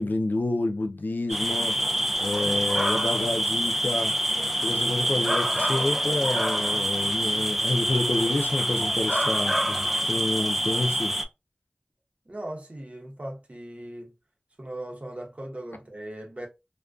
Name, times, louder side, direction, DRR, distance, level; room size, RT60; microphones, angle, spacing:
voice 1, 0.0-1.8 2.2-4.1 4.6-11.1, left 2 dB, 80° left, 0.4 m, -29 dB
sound 1, 1.3-11.2, right 1 dB, 5° right, 0.4 m, -26 dB
voice 2, 12.3-14.1 14.6-16.5, right 1 dB, 45° right, 0.8 m, -38 dB
2.4 x 2.2 x 2.2 m
wide cardioid pair, 40°, 3 cm